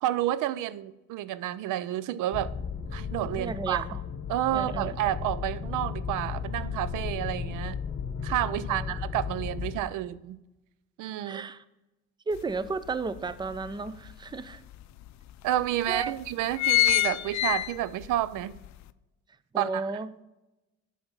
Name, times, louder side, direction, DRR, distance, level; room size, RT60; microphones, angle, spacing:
voice 1, 0.0-2.5 2.9-4.0 4.3-7.8 8.2-10.4 11.0-11.4 15.4-18.5 19.6-19.9, right 13 dB, 90° right, 17 dB, 0.5 m, -30 dB
sound 1, 2.3-9.8, left 6 dB, 40° left, 1.0 m, -35 dB
voice 2, 3.2-3.9 4.5-5.0 8.5-9.0 11.2-11.6 12.3-14.6 15.9-16.1 19.5-20.1, right 4 dB, 15° right, 15 dB, 0.4 m, -34 dB
sound 2, 12.4-12.5 12.9-14.1 14.7-14.8 15.1-15.2 15.8-16.1 16.3-18.1 18.6-18.7, left 15 dB, 65° left, 0.5 m, -25 dB
7.3 x 5.5 x 6.1 m, 1.0 s
cardioid pair, 90°, 30 cm